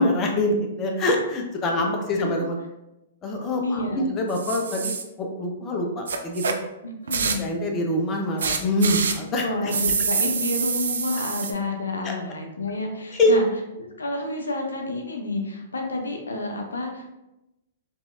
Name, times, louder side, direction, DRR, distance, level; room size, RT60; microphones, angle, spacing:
voice 1, 0.0-2.6 3.2-6.4 7.4-9.7 12.0-12.1 13.1-13.4, left 1 dB, 25° left, 1 dB, 0.5 m, -24 dB
voice 2, 3.6-4.1 6.8-7.5 9.4-13.5 13.8-17.1, left 2 dB, 80° left, 2 dB, 0.5 m, -29 dB
sound 1, 4.3-5.0 6.1-6.5 7.1-7.5 8.4-9.2 9.7-11.5, right 5 dB, 70° right, 0.3 m, -26 dB
3.0 x 2.7 x 2.3 m, 0.93 s
figure-of-eight pair, 110°, 0 cm